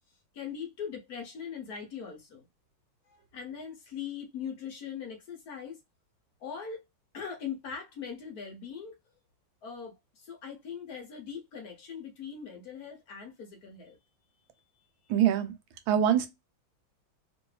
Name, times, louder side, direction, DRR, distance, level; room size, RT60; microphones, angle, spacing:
voice 1, 0.3-2.4 3.1-5.8 6.4-6.8 7.1-9.0 9.6-14.0, left 7 dB, 65° left, 1.0 m, -41 dB
voice 2, 15.1-15.5 15.9-16.3, right 10 dB, 85° right, 1.5 m, -24 dB
3.1 x 2.9 x 3.1 m
omnidirectional pair, 2.1 m